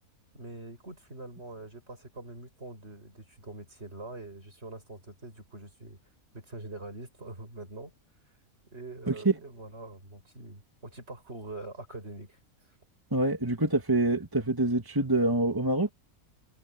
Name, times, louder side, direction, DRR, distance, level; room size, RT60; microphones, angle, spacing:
voice 1, 0.3-6.0 6.3-7.9 8.7-12.4, right 2 dB, 45° right, 6.7 m, -44 dB
voice 2, 13.1-15.9, right 2 dB, 15° right, 2.2 m, -26 dB
omnidirectional pair, 1.5 m